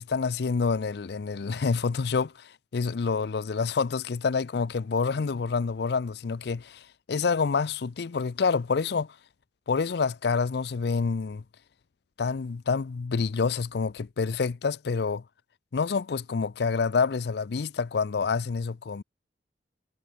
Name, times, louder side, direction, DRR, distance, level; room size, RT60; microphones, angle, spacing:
voice 1, 0.0-9.1 9.7-11.4 12.2-15.2 15.7-19.0, left 5 dB, 65° left, 0.5 m, -27 dB
head